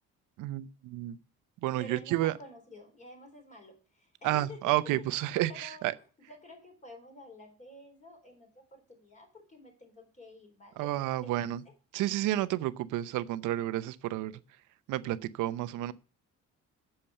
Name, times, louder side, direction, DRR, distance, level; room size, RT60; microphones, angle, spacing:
voice 1, 0.4-1.2 1.6-2.3 4.2-5.9 10.8-11.6 11.9-14.4 14.9-15.9, right 15 dB, 90° right, 0.8 m, -31 dB
voice 2, 1.8-4.6 5.5-5.9 6.3-10.9 11.2-11.5, left 1 dB, 25° left, 3.9 m, -50 dB
8.8 x 6.8 x 6.7 m
cardioid pair, 120°, 30 cm